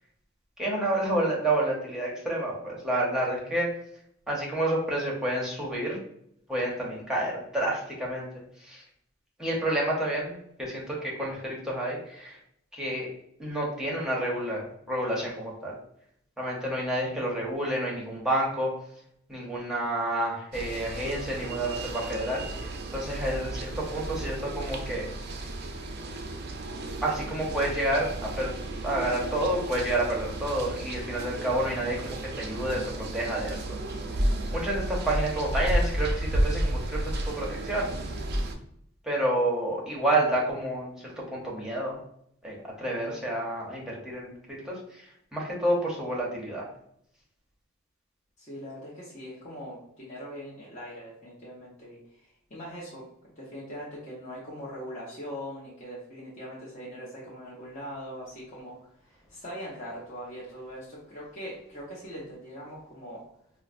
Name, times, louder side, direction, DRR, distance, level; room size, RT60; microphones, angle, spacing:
voice 1, 0.6-3.7 4.3-6.0 6.5-8.3 8.6-8.8 9.4-12.4 12.7-13.1 13.4-15.8 16.4-18.7 19.3-25.1 25.4-25.5 27.0-28.5 28.8-33.8 34.5-37.9 39.0-42.0 42.4-46.7, right 1 dB, 5° right, -4 dB, 0.7 m, -29 dB
sound 1, 20.5-38.6, right 1 dB, 55° right, 0.4 m, -32 dB
voice 2, 48.4-53.0 53.4-58.8 59.0-63.2, equal, 35° left, -7 dB, 0.8 m, -41 dB
4.6 x 2.0 x 2.4 m, 0.72 s
head